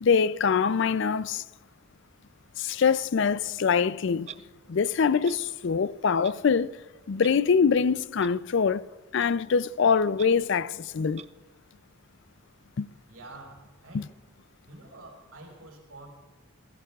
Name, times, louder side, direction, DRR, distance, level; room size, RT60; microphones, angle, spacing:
voice 1, 0.0-1.4 2.6-4.3 4.7-6.8 7.1-8.8 9.1-11.2 12.8-12.9 13.9-14.1, left 6 dB, 55° left, 0.4 m, -24 dB
Clock, 4.2-4.4 5.2-5.4 6.2-6.3 7.2-7.3 8.2-8.3 9.2-9.3 10.2-10.3 11.2-11.3, right 9 dB, 30° right, 0.4 m, -43 dB
voice 2, 13.1-14.1 14.7-16.1, right 2 dB, 80° right, 5.1 m, -47 dB
29.0 x 16.0 x 2.4 m
head